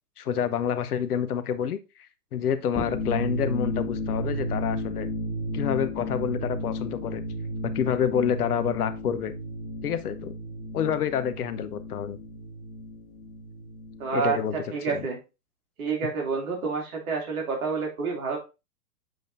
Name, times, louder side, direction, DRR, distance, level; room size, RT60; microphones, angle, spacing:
voice 1, 0.2-1.8 2.3-5.1 5.5-7.2 7.7-9.3 9.8-10.3 10.7-12.2 14.1-14.6 14.9-15.1, left 8 dB, 65° left, 12 dB, 1.0 m, -28 dB
sound 1, 2.6-14.2, left 1 dB, 25° left, 2.0 m, -33 dB
voice 2, 14.0-15.2 15.8-18.4, right 5 dB, 60° right, 0 dB, 2.8 m, -29 dB
7.7 x 5.2 x 2.6 m, 0.28 s
figure-of-eight pair, 115°, 48 cm